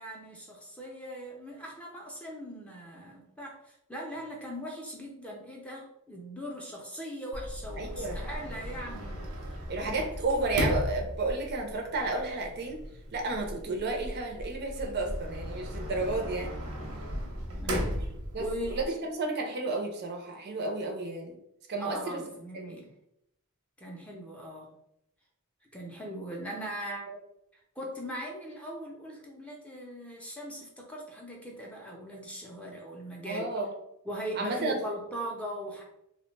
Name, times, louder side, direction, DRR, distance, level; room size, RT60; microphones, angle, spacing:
voice 1, 0.0-9.2 9.4-10.1 16.8-17.9 18.4-19.1 21.8-22.9 23.8-24.7 25.7-27.1 27.8-33.5 34.1-35.8, equal, 5° left, -2 dB, 0.5 m, -40 dB
Sliding door, 7.3-18.8, equal, 85° right, 0.8 m, -36 dB
voice 2, 7.8-8.2 9.7-12.8 13.1-16.6 18.3-21.4 21.7-22.2 22.5-22.7 27.1-27.2 33.3-33.7 34.4-34.8, right 2 dB, 50° right, 2 dB, 0.5 m, -32 dB
2.8 x 2.1 x 3.1 m, 0.79 s
head